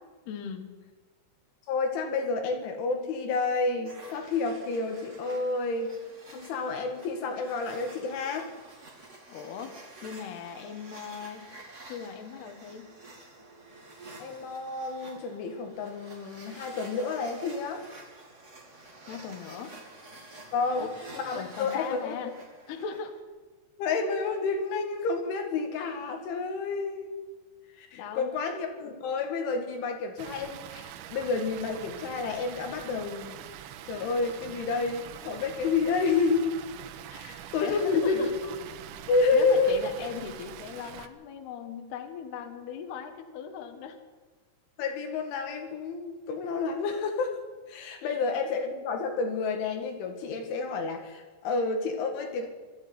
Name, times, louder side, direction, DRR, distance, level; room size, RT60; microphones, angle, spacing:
voice 1, 0.3-0.7 9.3-11.5 11.9-12.9 19.1-19.8 20.8-20.9 21.3-22.4 22.7-23.1 27.9-28.3 37.1-37.2 37.6-38.3 39.3-44.0 48.0-48.2, left 7 dB, 65° left, 6 dB, 3.4 m, -39 dB
voice 2, 1.7-5.9 6.3-8.5 14.2-17.8 20.5-20.9 21.1-22.3 23.8-27.1 27.8-33.5 33.9-36.5 37.1-38.3 39.1-39.8 44.8-47.4 47.7-52.5, left 4 dB, 85° left, 3 dB, 4.6 m, -29 dB
sound 1, 3.8-23.2, right 2 dB, 25° right, 2.0 m, -50 dB
Water, 30.2-41.1, right 11 dB, 80° right, 3.3 m, -44 dB
21.0 x 13.5 x 9.5 m, 1.4 s
omnidirectional pair, 5.3 m